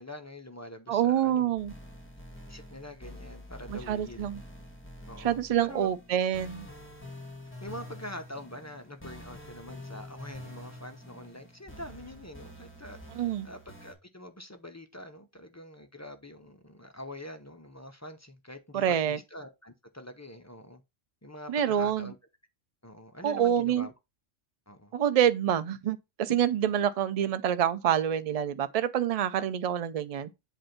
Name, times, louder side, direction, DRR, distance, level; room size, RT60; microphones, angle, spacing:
voice 1, 0.0-1.5 2.5-4.3 5.1-5.9 7.6-20.8 21.2-22.2 22.8-23.9 24.7-24.9, left 1 dB, 25° left, 0.3 m, -45 dB
voice 2, 0.9-1.7 3.7-4.4 5.2-6.7 13.1-13.5 18.7-19.2 21.5-22.1 23.2-23.9 24.9-30.3, right 10 dB, 75° right, 0.3 m, -27 dB
sound 1, 1.6-13.9, left 1 dB, 10° left, 1.6 m, -47 dB
7.8 x 2.6 x 5.8 m
omnidirectional pair, 1.3 m